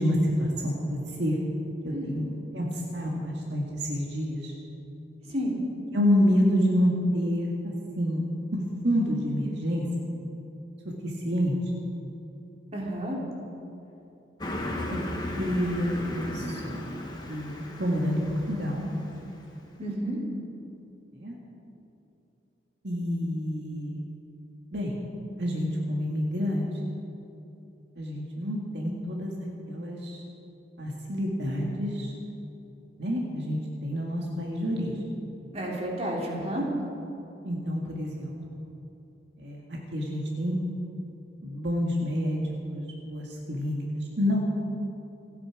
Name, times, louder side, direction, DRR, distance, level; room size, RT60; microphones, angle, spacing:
voice 1, 0.0-1.4 1.8-4.5 5.9-8.2 8.5-9.9 11.0-11.5 14.9-16.8 17.3-18.9 21.2-21.4 22.8-24.0 24.7-25.0 25.4-26.6 28.0-29.3 29.7-30.2 30.8-32.1 33.0-35.0 37.4-38.6 39.4-39.6 39.9-40.6 41.4-42.4 42.7-44.4, equal, 65° right, -2 dB, 2.0 m, -28 dB
voice 2, 5.2-5.6 12.7-13.2 19.8-20.2 35.5-36.6, right 1 dB, 35° right, -2 dB, 3.0 m, -31 dB
Car passing by, 14.4-19.4, left 1 dB, 25° left, 1.7 m, -36 dB
28.5 x 9.7 x 5.0 m, 2.9 s
head